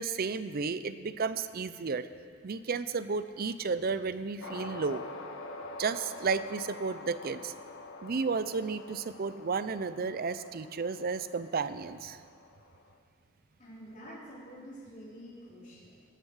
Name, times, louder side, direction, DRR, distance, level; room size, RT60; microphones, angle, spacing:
voice 1, 0.0-2.1 2.4-5.0 5.8-7.5 8.0-12.2, right 4 dB, 45° right, 13 dB, 0.5 m, -33 dB
sound 1, 4.4-12.9, left 2 dB, 70° left, 1.2 m, -46 dB
voice 2, 13.6-16.0, equal, 40° left, -7 dB, 4.4 m, -48 dB
18.0 x 12.0 x 4.9 m, 2.1 s
head